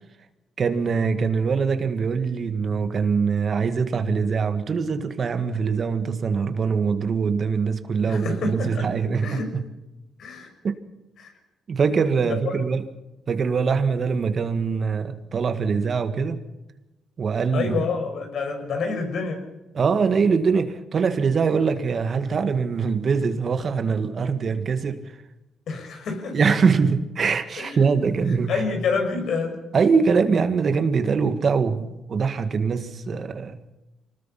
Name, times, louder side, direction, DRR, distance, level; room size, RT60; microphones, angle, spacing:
voice 1, 0.6-9.6 10.6-10.8 11.7-12.8 13.3-16.4 17.2-17.9 19.7-25.1 26.3-28.6 29.7-33.6, right 5 dB, 45° right, 1.7 m, -23 dB
voice 2, 8.1-8.9 9.2-9.5 10.2-10.5 11.2-11.3 12.3-12.5 17.5-19.4 25.7-26.4 27.6-27.8 28.3-29.6, left 4 dB, 65° left, 6.2 m, -28 dB
25.0 x 19.5 x 5.8 m
cardioid pair, 90°, 0 cm